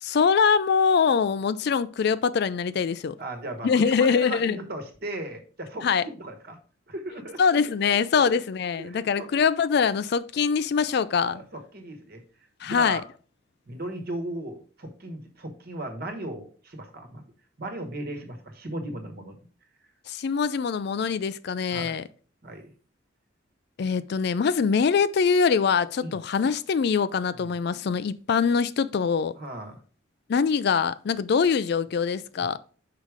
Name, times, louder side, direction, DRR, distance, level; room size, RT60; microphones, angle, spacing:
voice 1, 0.0-3.2 3.6-4.6 5.8-6.0 7.4-11.4 12.6-13.0 20.1-22.0 23.8-29.3 30.3-32.6, left 6 dB, 55° left, 0.3 m, -23 dB
voice 2, 3.2-6.6 6.9-7.4 8.1-8.4 8.8-9.3 11.3-12.2 12.6-13.0 13.7-17.2 17.6-19.4 21.7-22.0 22.4-22.7 26.0-26.2 27.3-27.5 29.4-29.8 32.4-32.5, right 1 dB, 50° right, 1.3 m, -37 dB
5.6 x 4.8 x 4.9 m
head